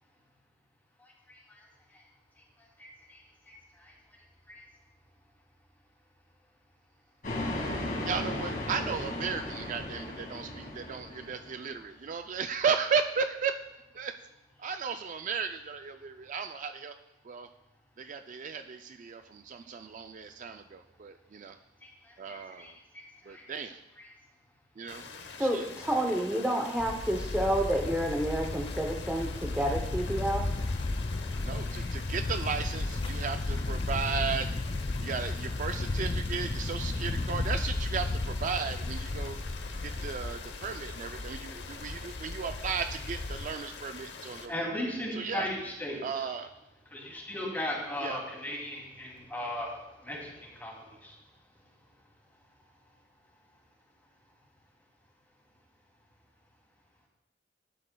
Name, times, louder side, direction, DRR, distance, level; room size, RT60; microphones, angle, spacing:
voice 1, 1.0-1.6 1.9-2.0 2.8-3.2 3.8-3.9 4.5-4.6 21.8-21.9 22.2-23.4 31.7-31.9 44.5-46.3 46.9-51.2, left 1 dB, 10° left, -3 dB, 2.6 m, -37 dB
sound 1, 7.2-11.7, left 1 dB, 50° left, 2.0 m, -36 dB
voice 2, 8.0-13.6 13.9-14.1 14.6-16.9 17.2-17.5 18.0-21.6 22.2-22.8 23.3-23.8 24.8-25.0 25.4-25.7 31.4-34.5 35.0-39.4 39.8-44.5 45.1-45.5 46.0-46.5 48.0-48.2, right 6 dB, 45° right, 7 dB, 0.4 m, -35 dB
sound 2, 24.9-44.5, left 5 dB, 75° left, 0.8 m, -45 dB
voice 3, 25.4-30.4, right 1 dB, 10° right, 0 dB, 0.7 m, -29 dB
sound 3, 26.8-43.5, left 2 dB, 30° left, 0.3 m, -34 dB
12.0 x 11.0 x 2.2 m, 0.95 s
head